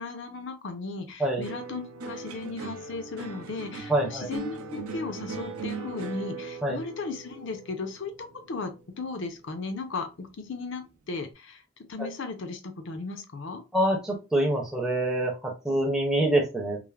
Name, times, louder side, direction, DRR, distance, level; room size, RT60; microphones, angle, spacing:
voice 1, 0.0-8.1 8.5-11.6 11.9-13.6, left 3 dB, 60° left, 7 dB, 0.5 m, -36 dB
sound 1, 1.4-9.9 10.2-10.8, right 4 dB, 85° right, 0.5 m, -40 dB
voice 2, 3.9-4.3 6.6-6.8 13.7-16.8, right 1 dB, 5° right, -2 dB, 0.5 m, -25 dB
3.1 x 2.0 x 2.3 m, 0.27 s
head